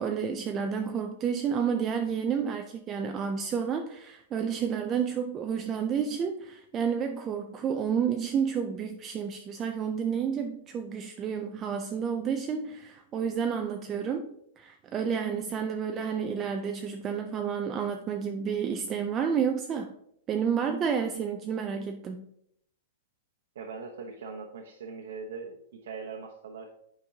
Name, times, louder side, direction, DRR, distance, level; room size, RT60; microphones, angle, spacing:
voice 1, 0.0-14.3 14.6-19.9 20.3-22.3, right 7 dB, 20° right, 5 dB, 0.4 m, -30 dB
voice 2, 23.5-26.7, right 5 dB, 75° right, 1 dB, 0.9 m, -41 dB
8.9 x 5.1 x 2.8 m, 0.72 s
supercardioid pair, 170°, 0 cm